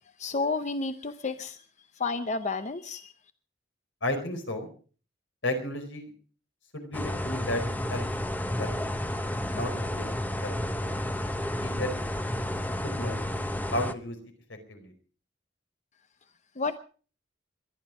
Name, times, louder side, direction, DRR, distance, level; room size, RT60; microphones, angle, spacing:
voice 1, 0.2-1.6 2.0-3.1 16.6-16.8, left 3 dB, 40° left, 10 dB, 0.8 m, -31 dB
voice 2, 4.0-4.7 5.4-6.1 6.7-7.6 7.9-8.0 8.5-9.0 9.5-10.1 10.4-10.7 11.6-12.0 12.8-13.2 13.7-14.2 14.5-14.9, left 1 dB, 85° left, 6 dB, 4.7 m, -33 dB
sound 1, 6.9-13.9, left 1 dB, 10° left, 0.9 m, -31 dB
22.0 x 11.5 x 5.0 m, 0.40 s
head